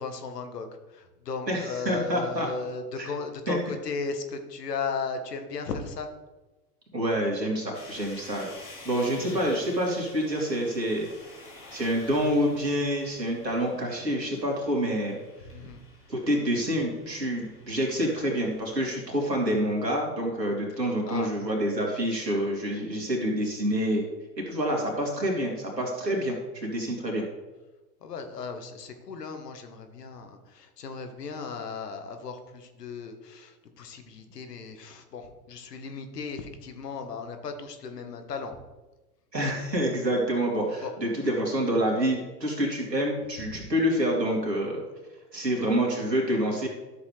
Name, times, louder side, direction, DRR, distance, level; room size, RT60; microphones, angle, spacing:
voice 1, 0.0-6.1 15.5-15.8 21.1-21.3 28.0-38.6 40.8-40.9 45.3-45.5, left 5 dB, 75° left, 7 dB, 1.5 m, -36 dB
voice 2, 1.5-2.5 3.0-3.1 3.5-3.6 6.9-8.5 8.8-11.1 11.7-15.2 16.1-24.0 24.4-27.2 39.3-44.8 45.3-46.7, equal, 90° right, -1 dB, 2.8 m, -27 dB
sound 1, 7.7-18.9, left 2 dB, 25° left, 2.9 m, -50 dB
12.5 x 7.2 x 3.4 m, 1.1 s
figure-of-eight pair, 95°, 49 cm